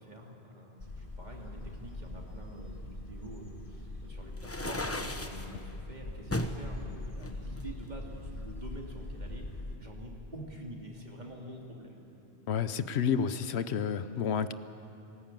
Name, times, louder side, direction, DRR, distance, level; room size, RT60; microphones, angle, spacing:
voice 1, 0.0-9.4 9.8-12.0, right 1 dB, 45° right, -1 dB, 2.9 m, -47 dB
sound 1, 0.8-9.8, left 2 dB, 55° left, 2.1 m, -42 dB
sound 2, 4.4-5.5 6.3-6.6 7.2-8.3, left 1 dB, 15° left, 0.9 m, -35 dB
voice 2, 12.5-14.5, left 7 dB, 80° left, 13 dB, 1.0 m, -30 dB
19.5 x 18.5 x 9.1 m, 2.8 s
omnidirectional pair, 1.1 m